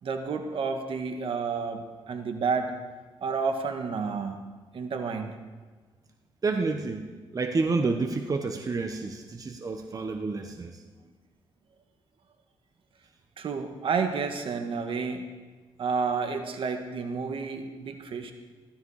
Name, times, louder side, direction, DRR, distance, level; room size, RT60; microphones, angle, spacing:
voice 1, 0.0-2.7 3.2-4.4 4.7-5.4 13.4-15.3 15.8-18.3, right 5 dB, 65° right, 6 dB, 1.5 m, -30 dB
voice 2, 6.4-10.8, right 3 dB, 40° right, 5 dB, 1.1 m, -29 dB
15.0 x 13.0 x 4.9 m, 1.4 s
cardioid pair, 85°, 10 cm